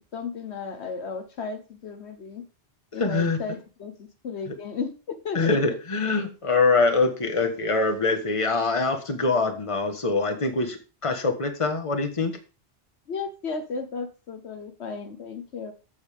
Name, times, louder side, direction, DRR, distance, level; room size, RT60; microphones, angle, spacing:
voice 1, 0.1-2.4 2.9-5.5 13.1-15.7, left 5 dB, 70° left, 7 dB, 1.3 m, -34 dB
voice 2, 3.0-3.4 5.3-12.3, left 3 dB, 30° left, 6 dB, 1.4 m, -24 dB
13.5 x 7.0 x 3.6 m, 0.35 s
omnidirectional pair, 1.2 m